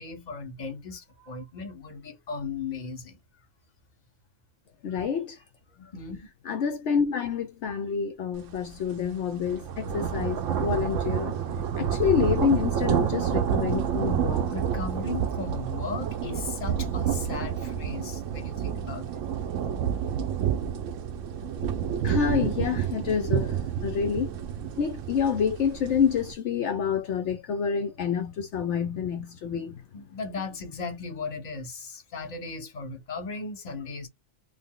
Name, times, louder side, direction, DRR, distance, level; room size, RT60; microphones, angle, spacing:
voice 1, 0.0-3.2 5.8-6.3 14.5-19.2 29.9-34.1, left 4 dB, 40° left, 1.1 m, -37 dB
voice 2, 4.8-5.4 6.5-11.4 11.8-14.5 22.0-24.3 24.8-29.8, left 7 dB, 70° left, 1.0 m, -28 dB
sound 1, 8.5-8.7 9.1-26.3, right 8 dB, 80° right, 1.0 m, -29 dB
3.4 x 2.1 x 3.7 m
omnidirectional pair, 1.3 m